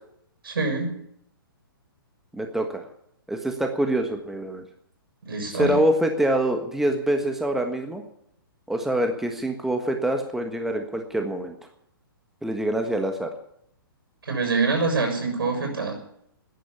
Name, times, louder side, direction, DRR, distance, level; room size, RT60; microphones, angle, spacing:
voice 1, 0.4-0.9 5.2-5.8 14.3-16.0, right 3 dB, 70° right, 4 dB, 6.9 m, -25 dB
voice 2, 2.3-2.8 3.3-4.6 5.5-8.0 8.7-11.6 12.4-13.3, right 1 dB, 5° right, 4 dB, 1.5 m, -25 dB
13.5 x 10.5 x 9.8 m, 0.71 s
figure-of-eight pair, 120°, 12 cm